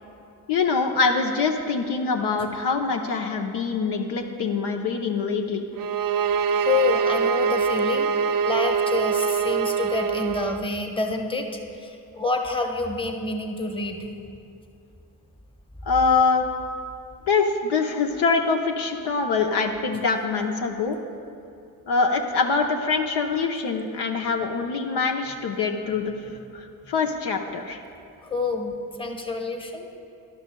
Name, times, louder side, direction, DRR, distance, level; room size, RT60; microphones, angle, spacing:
voice 1, 0.5-5.6 15.9-16.5 17.3-21.0 21.9-26.1 26.5-27.8, left 4 dB, 65° left, 3 dB, 0.8 m, -24 dB
sound 1, 5.8-10.7, right 6 dB, 50° right, 0.6 m, -24 dB
voice 2, 6.6-8.1 8.4-14.1 28.3-28.7 29.0-29.9, left 3 dB, 10° left, 3 dB, 1.1 m, -27 dB
12.5 x 11.0 x 2.3 m, 2.6 s
hypercardioid pair, 45°, 45 cm